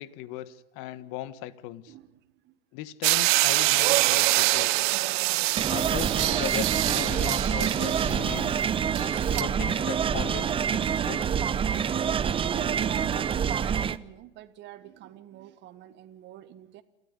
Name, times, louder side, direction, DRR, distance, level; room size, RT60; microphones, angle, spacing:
voice 1, 0.0-1.9 2.7-4.7 5.7-8.7 9.4-11.3, left 13 dB, 45° left, 16 dB, 1.5 m, -38 dB
voice 2, 1.9-2.6 12.2-16.8, right 13 dB, 40° right, 9 dB, 1.6 m, -44 dB
sound 1, 3.0-9.4, right 21 dB, 55° right, 0.9 m, -25 dB
sound 2, 5.6-14.0, right 8 dB, 20° right, 0.8 m, -27 dB
28.0 x 14.0 x 9.7 m, 0.90 s
hypercardioid pair, 105°, 29 cm